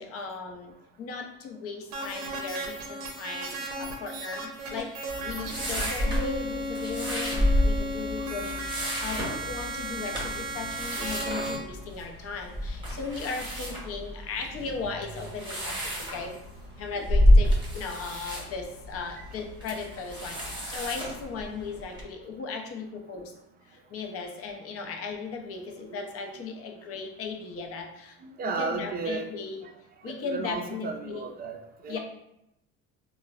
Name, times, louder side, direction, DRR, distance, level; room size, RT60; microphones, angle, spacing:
voice 1, 0.0-16.4 16.8-23.3 23.6-28.2 28.4-29.7 30.0-31.3 31.9-32.0, left 4 dB, 50° left, 3 dB, 0.6 m, -37 dB
sound 1, 1.9-11.6, right 1 dB, 85° right, 0.6 m, -35 dB
sound 2, 5.1-22.0, left 1 dB, 15° right, 0.9 m, -29 dB
voice 2, 25.9-26.4 28.2-29.3 30.0-32.0, right 4 dB, 30° right, 4 dB, 0.4 m, -35 dB
3.1 x 2.1 x 2.3 m, 0.84 s
supercardioid pair, 90°, 31 cm